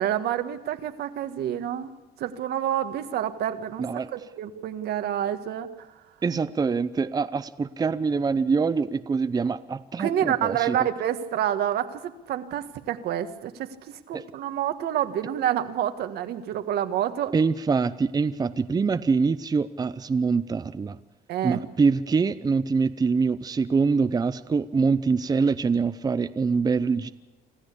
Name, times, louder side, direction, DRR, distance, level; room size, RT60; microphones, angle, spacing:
voice 1, 0.0-1.9 2.2-3.8 4.1-5.7 10.0-17.3 21.3-21.6, right 10 dB, 70° right, 9 dB, 1.6 m, -28 dB
voice 2, 3.8-4.1 6.2-10.9 14.1-14.2 17.3-21.0 21.4-27.1, right 5 dB, 25° right, 12 dB, 0.7 m, -24 dB
26.0 x 14.0 x 8.4 m, 1.1 s
cardioid pair, 110°, 17 cm